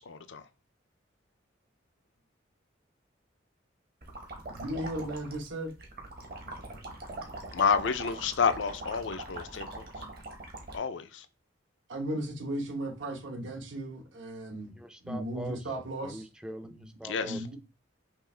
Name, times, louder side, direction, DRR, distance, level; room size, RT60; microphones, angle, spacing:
voice 1, 0.1-0.4 7.5-9.8 10.7-11.3 17.0-17.4, left 6 dB, 70° left, 0.5 m, -29 dB
sound 1, 4.0-10.8, right 2 dB, 55° right, 1.0 m, -42 dB
voice 2, 4.5-5.7 11.9-14.7 15.0-16.3 16.6-16.9 17.2-17.6, right 1 dB, 75° right, 1.1 m, -36 dB
voice 3, 14.6-15.6 16.0-17.6, right 1 dB, 5° right, 0.4 m, -43 dB
5.6 x 2.5 x 3.3 m
head